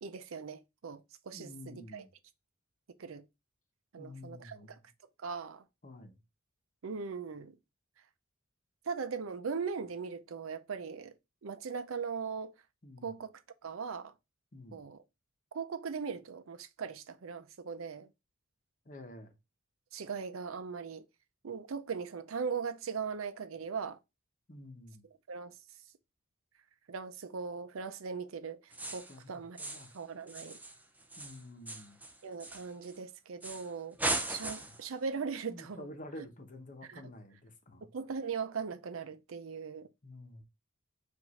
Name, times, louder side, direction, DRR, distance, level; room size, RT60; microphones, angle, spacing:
voice 1, 0.0-2.1 3.0-3.3 3.9-4.8 5.2-5.6 6.8-7.6 8.9-11.1 11.4-12.6 13.0-13.3 13.6-14.1 14.7-15.0 15.5-18.1 19.9-21.1 21.4-24.0 25.3-25.6 26.9-29.6 29.9-30.6 32.2-35.9 36.9-37.0 37.9-39.9, right 5 dB, 80° right, 0.6 m, -39 dB
voice 2, 1.3-2.1 4.0-4.8 5.8-6.2 12.8-13.1 14.5-14.9 18.8-19.4 24.5-25.0 29.1-29.9 31.2-32.0 35.5-37.9 40.0-40.4, left 1 dB, 40° left, 0.9 m, -49 dB
sound 1, 28.7-29.2 29.6-30.0 30.3-33.0 33.4-33.7 34.0-34.8, right 2 dB, 10° right, 0.6 m, -38 dB
4.9 x 2.6 x 4.0 m
head